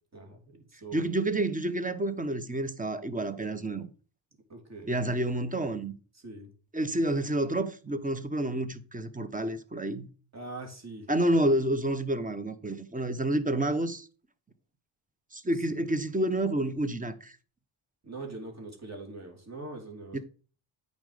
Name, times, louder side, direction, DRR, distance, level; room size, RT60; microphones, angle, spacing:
voice 1, 0.1-1.1 4.5-5.0 6.2-6.5 10.3-11.1 15.7-15.8 18.0-20.2, right 3 dB, 30° right, 3.4 m, -42 dB
voice 2, 0.9-3.9 4.9-5.9 6.7-10.1 11.1-14.1 15.3-17.4 20.1-20.2, right 1 dB, 15° right, 1.0 m, -29 dB
8.8 x 5.4 x 5.1 m
cardioid pair, 70°, 50 cm